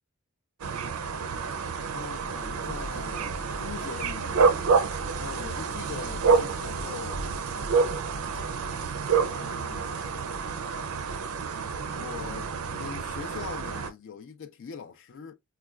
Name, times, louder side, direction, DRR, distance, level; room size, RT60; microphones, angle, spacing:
sound 1, 0.6-13.9, right 5 dB, 75° right, 0.4 m, -28 dB
voice 1, 1.9-4.6 5.1-7.2 9.2-10.2 11.9-15.3, left 7 dB, 60° left, 0.4 m, -42 dB
sound 2, 2.1-8.6, right 1 dB, 20° right, 0.5 m, -44 dB
4.5 x 2.2 x 2.2 m
head